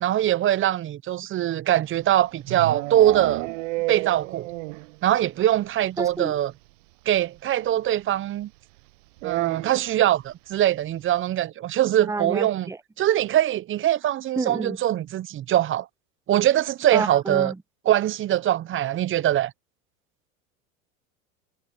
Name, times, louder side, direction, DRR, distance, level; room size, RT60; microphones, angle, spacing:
voice 1, 0.0-3.4 3.9-4.5 5.0-6.5 7.1-8.5 9.2-12.7 13.0-15.9 16.3-17.5 17.9-19.5, right 12 dB, 30° right, 0.7 m, -22 dB
sound 1, 1.9-5.0 5.2-5.3 5.6-5.7 6.0-6.1 7.4-7.5 9.2-10.0, right 23 dB, 65° right, 1.0 m, -31 dB
voice 2, 6.0-6.4 12.0-12.8 14.4-14.8 16.9-17.6, right 3 dB, 10° right, 1.1 m, -29 dB
hypercardioid pair, 95°, 41 cm